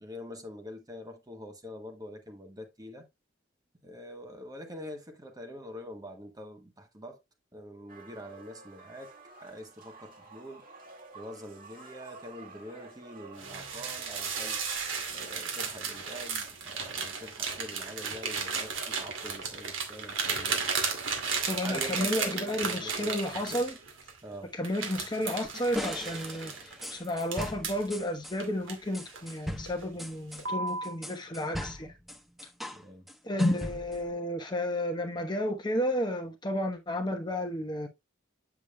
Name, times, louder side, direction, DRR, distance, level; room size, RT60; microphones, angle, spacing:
voice 1, 0.0-3.1 3.8-7.2 7.5-9.1 9.4-10.6 11.1-14.6 15.1-20.7 21.6-23.2 23.5-23.6 24.2-24.6 32.7-33.1, equal, 20° right, 1.3 m, -44 dB
sound 1, 7.9-15.4, right 3 dB, 45° right, 2.0 m, -51 dB
sound 2, 13.4-24.2 24.6-27.9 28.4-29.3 29.7-29.9 30.4-31.0, right 5 dB, 85° right, 2.3 m, -34 dB
voice 2, 21.5-23.7 24.5-26.5 26.9-31.9 33.2-37.9, left 1 dB, 20° left, 1.0 m, -32 dB
sound 3, 25.8-28.4 28.9-32.8 33.1-34.1, equal, ahead, 1.0 m, -39 dB
8.2 x 7.1 x 2.2 m
head